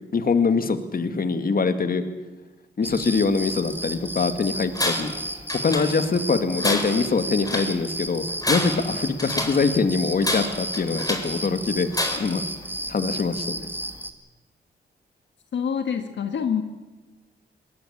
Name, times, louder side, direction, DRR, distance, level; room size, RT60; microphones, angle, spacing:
voice 1, 0.1-2.0 2.8-5.1 5.5-11.9 12.1-12.4 12.9-13.7, left 4 dB, 50° left, 9 dB, 2.1 m, -23 dB
sound 1, 2.8-14.1, right 1 dB, 10° right, 2.3 m, -33 dB
Tools, 4.7-5.2 5.5-6.2 6.6-7.8 8.3-9.7 10.2-11.4 11.9-12.4, left 1 dB, 20° left, 4.2 m, -28 dB
voice 2, 15.5-16.6, left 7 dB, 75° left, 7 dB, 1.8 m, -26 dB
21.5 x 17.0 x 8.7 m, 1.2 s
cardioid pair, 65°, 19 cm